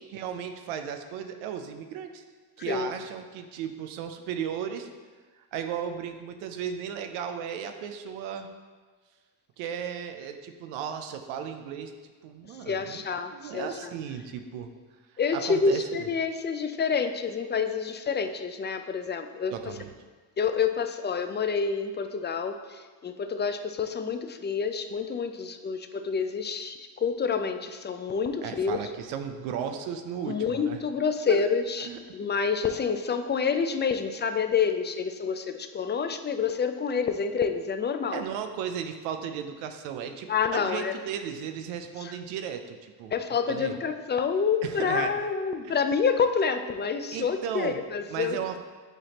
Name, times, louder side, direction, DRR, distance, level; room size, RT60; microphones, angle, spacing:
voice 1, 0.0-2.2 2.6-4.9 5.3-8.5 9.6-11.9 12.2-13.0 13.3-14.7 15.3-16.1 19.5-19.9 28.4-30.8 31.3-31.4 31.8-32.0 38.1-43.1 43.5-43.8 44.6-45.2 45.6-45.8 47.1-47.8 48.1-48.6, right 8 dB, 85° right, 7 dB, 0.6 m, -35 dB
voice 2, 12.7-13.9 15.2-19.8 20.4-28.9 30.3-38.2 40.3-40.9 42.0-42.1 43.1-48.4, left 5 dB, 25° left, 8 dB, 0.4 m, -28 dB
8.0 x 4.2 x 2.9 m, 1.4 s
supercardioid pair, 60°, 48 cm